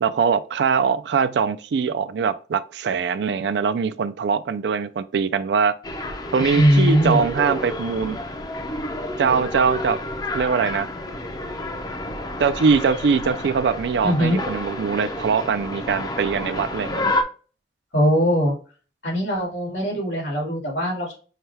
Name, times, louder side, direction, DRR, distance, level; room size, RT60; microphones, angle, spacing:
voice 1, 0.0-5.8 6.3-8.2 9.2-10.0 10.3-10.9 12.4-17.1, right 5 dB, 75° right, 0.4 m, -22 dB
sound 1, 5.8-17.2, left 1 dB, 20° left, 0.5 m, -29 dB
voice 2, 6.5-7.2 14.0-14.4 17.9-18.5 19.0-21.2, equal, 90° left, 2.3 m, -20 dB
5.7 x 2.2 x 3.2 m
head